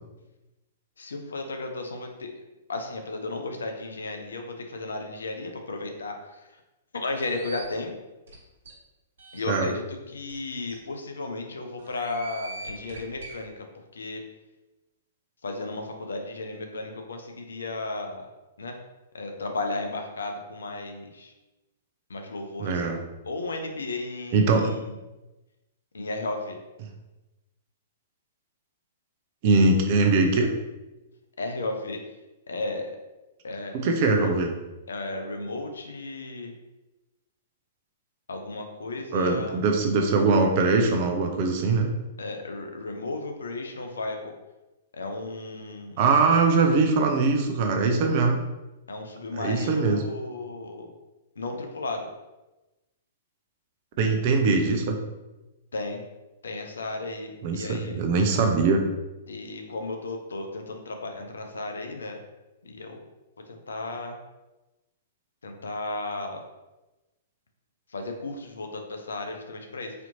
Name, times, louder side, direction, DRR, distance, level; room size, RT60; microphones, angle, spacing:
voice 1, 1.0-2.3 2.7-6.4 6.9-7.9 9.3-13.6 13.9-14.2 15.4-18.3 18.6-18.8 19.1-21.3 22.1-23.0 23.3-24.8 25.9-26.6 31.4-32.0 32.5-32.9 33.4-33.8 34.0-34.3 34.9-36.5 38.3-39.6 42.2-44.3 44.9-46.0 48.9-50.9 51.4-52.1 55.7-56.0 56.4-58.0 59.3-62.2 62.6-63.0 63.5-64.2 65.4-66.4 67.9-69.9, left 2 dB, 70° left, 4 dB, 0.5 m, -34 dB
sound 1, 7.2-7.6 8.3-8.4 8.6-8.7 9.2-9.6 10.3-10.4 10.7-10.8 11.8-13.3, right 2 dB, 65° right, 1.1 m, -42 dB
voice 2, 22.6-23.0 24.3-24.7 29.4-30.5 33.7-34.5 39.1-41.9 46.0-48.4 49.3-50.0 54.0-55.0 57.4-58.8, right 3 dB, 45° right, 4 dB, 0.6 m, -22 dB
4.3 x 2.8 x 2.7 m, 1.0 s
figure-of-eight pair, 110°, 0 cm